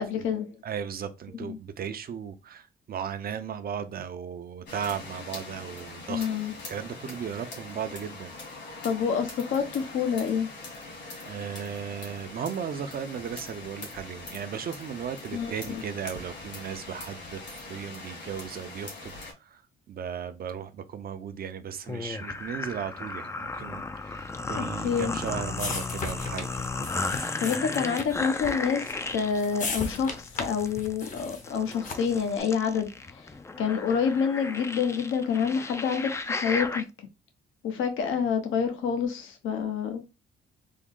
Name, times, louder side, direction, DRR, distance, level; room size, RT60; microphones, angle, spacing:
voice 1, 0.0-0.5 1.5-1.6 6.1-6.5 8.8-10.5 15.3-15.8 24.6-25.2 27.4-33.3 33.6-37.1 37.6-40.0, left 6 dB, 80° left, 0.8 m, -28 dB
voice 2, 0.6-6.3 6.7-8.3 11.2-19.1 19.4-19.6 19.9-26.5, right 8 dB, 50° right, 0.6 m, -36 dB
sound 1, 4.7-19.3, left 3 dB, 60° left, 1.7 m, -42 dB
sound 2, 21.9-36.8, left 3 dB, 15° left, 0.4 m, -35 dB
sound 3, 24.8-32.3, left 4 dB, 40° left, 0.8 m, -38 dB
3.6 x 2.0 x 3.6 m
cardioid pair, 90°, 20 cm